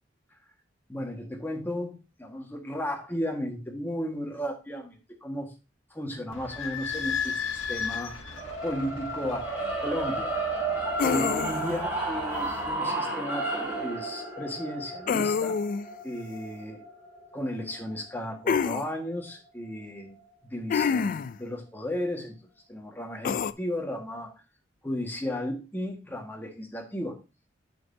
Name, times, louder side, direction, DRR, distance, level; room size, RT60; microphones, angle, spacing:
voice 1, 0.9-1.9 2.2-5.5 5.9-8.3 8.6-10.3 11.0-15.6 16.0-16.8 17.3-20.2 20.4-22.4 22.7-24.3 24.8-27.2, left 1 dB, 10° left, 1 dB, 1.5 m, -34 dB
Idling / Squeak, 6.3-12.7, left 6 dB, 80° left, 1.3 m, -37 dB
sound 1, 8.3-18.5, right 2 dB, 10° right, 2.8 m, -33 dB
sound 2, 11.0-11.8 15.1-15.9 18.5-18.8 20.7-21.4 23.2-23.5, left 6 dB, 45° left, 0.3 m, -26 dB
8.7 x 6.5 x 2.7 m, 0.29 s
head